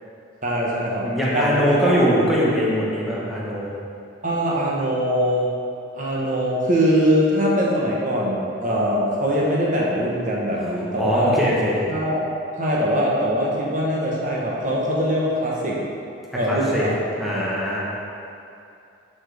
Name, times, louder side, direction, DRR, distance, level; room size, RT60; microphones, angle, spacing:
voice 1, 0.4-2.1 4.2-5.5 5.9-11.3 11.9-12.2 12.6-15.8 16.3-16.9 17.3-17.4, equal, 40° right, -4 dB, 1.0 m, -22 dB
voice 2, 1.0-3.7 10.6-11.8 16.5-16.9 17.1-17.8, equal, ahead, -7 dB, 1.1 m, -22 dB
11.0 x 4.3 x 3.4 m, 2.6 s
head